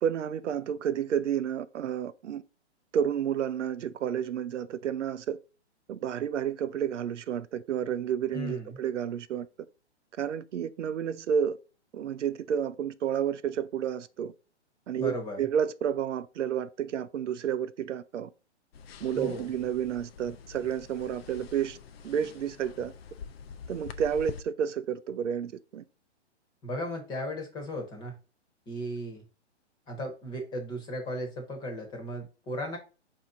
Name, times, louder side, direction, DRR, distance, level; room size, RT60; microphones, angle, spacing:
voice 1, 0.0-2.4 2.9-5.4 5.9-9.5 10.2-11.6 11.9-14.3 14.9-18.3 19.0-21.8 22.0-22.9 23.7-25.8, right 8 dB, 90° right, 0.5 m, -30 dB
voice 2, 8.3-8.8 15.0-15.4 19.1-19.5 26.6-28.2 28.7-29.2 29.9-32.8, equal, 10° left, 0.9 m, -36 dB
sound 1, 18.7-24.4, left 6 dB, 55° left, 0.5 m, -45 dB
4.5 x 2.8 x 3.6 m
hypercardioid pair, 150°, 35 cm